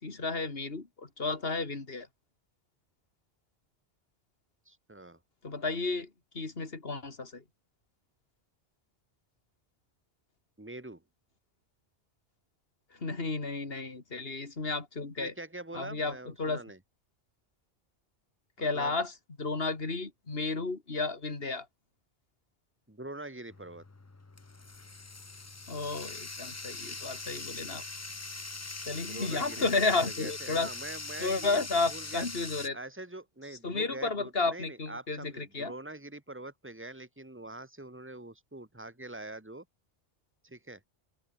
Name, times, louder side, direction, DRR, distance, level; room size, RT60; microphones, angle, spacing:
voice 1, 0.0-2.1 5.4-6.1 6.3-7.4 12.9-15.3 15.7-16.6 18.6-19.1 19.4-21.7 25.7-27.8 28.9-30.7 31.2-32.8 33.6-35.7, left 3 dB, 60° left, 3.0 m, -32 dB
voice 2, 4.7-5.2 10.6-11.0 15.2-16.8 18.6-19.0 22.9-23.8 29.0-31.6 31.9-32.3 32.7-39.7 40.4-40.8, right 2 dB, 10° right, 2.1 m, -44 dB
Bathtub (filling or washing), 23.5-32.7, left 3 dB, 20° left, 0.5 m, -42 dB
open air
omnidirectional pair, 1.1 m